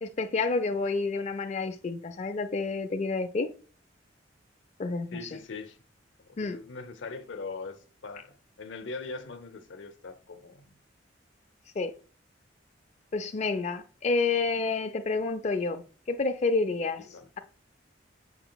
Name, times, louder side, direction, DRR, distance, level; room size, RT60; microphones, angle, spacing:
voice 1, 0.0-3.5 4.8-5.2 6.4-6.6 11.8-11.9 13.1-17.0, left 3 dB, 40° left, 0.4 m, -29 dB
voice 2, 5.1-5.8 6.2-10.8 17.0-17.3, left 4 dB, 85° left, 0.6 m, -41 dB
5.7 x 3.8 x 2.3 m
head